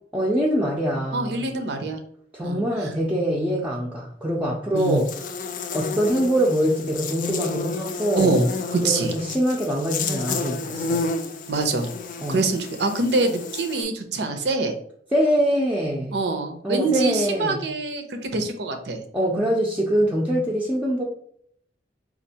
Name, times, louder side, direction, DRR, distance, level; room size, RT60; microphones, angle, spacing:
voice 1, 0.1-1.4 2.3-5.1 5.7-8.3 8.8-11.0 12.2-12.4 15.1-16.2 16.6-17.6 19.1-21.0, equal, 10° right, -5 dB, 0.5 m, -24 dB
voice 2, 1.1-2.0 2.4-2.9 4.7-5.0 8.2-8.4 8.7-9.1 11.5-11.9 12.3-14.7 16.1-19.0, right 3 dB, 70° right, 6 dB, 0.6 m, -25 dB
Buzz, 4.8-13.8, left 4 dB, 50° left, 0.4 m, -31 dB
4.3 x 2.4 x 2.8 m, 0.65 s
head